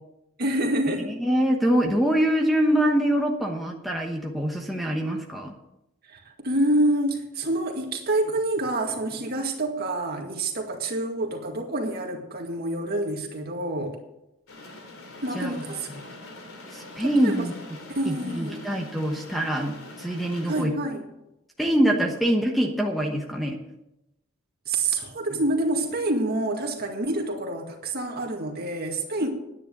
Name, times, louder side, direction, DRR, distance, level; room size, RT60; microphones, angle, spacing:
voice 1, 0.4-1.1 6.1-14.0 15.2-15.9 17.0-17.5 17.9-18.6 20.5-21.0 24.7-29.3, right 1 dB, 50° right, 2 dB, 2.1 m, -27 dB
voice 2, 1.1-5.5 15.3-15.5 16.7-17.5 18.0-20.7 21.6-23.6, equal, ahead, -1 dB, 1.1 m, -24 dB
sound 1, 14.5-20.6, left 2 dB, 90° left, 3.1 m, -43 dB
10.5 x 9.8 x 6.7 m, 0.90 s
head